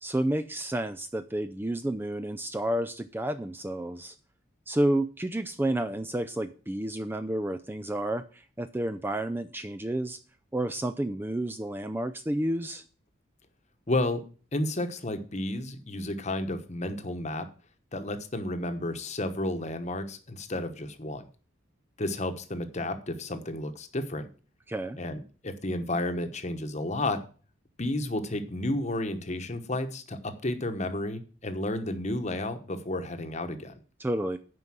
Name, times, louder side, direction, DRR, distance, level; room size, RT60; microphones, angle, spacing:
voice 1, 0.0-4.1 4.7-10.2 10.5-12.8 24.7-25.0 34.0-34.4, right 1 dB, 10° right, 8 dB, 0.4 m, -30 dB
voice 2, 13.9-14.2 14.5-17.5 17.9-21.3 22.0-24.3 25.0-27.2 27.8-33.8, left 1 dB, 35° left, 8 dB, 1.1 m, -32 dB
9.5 x 5.4 x 7.4 m, 0.38 s
head